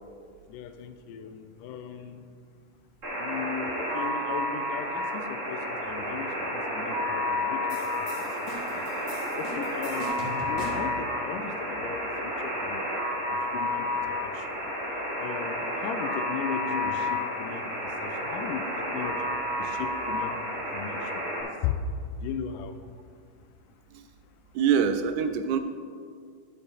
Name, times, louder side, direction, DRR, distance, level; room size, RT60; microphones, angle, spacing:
voice 1, 0.5-2.2 3.2-7.9 8.1-12.9 13.3-14.7 15.2-17.7 18.0-19.3 19.6-20.4 20.7-21.8 22.2-22.8, left 7 dB, 90° left, 9 dB, 2.2 m, -37 dB
Alarm, 3.0-21.4, left 1 dB, 25° right, 2.5 m, -31 dB
sound 1, 7.7-11.0, left 2 dB, 70° left, 2.5 m, -41 dB
voice 2, 24.6-25.6, right 7 dB, 80° right, 8 dB, 1.9 m, -24 dB
11.5 x 6.8 x 4.0 m, 2.1 s
omnidirectional pair, 3.7 m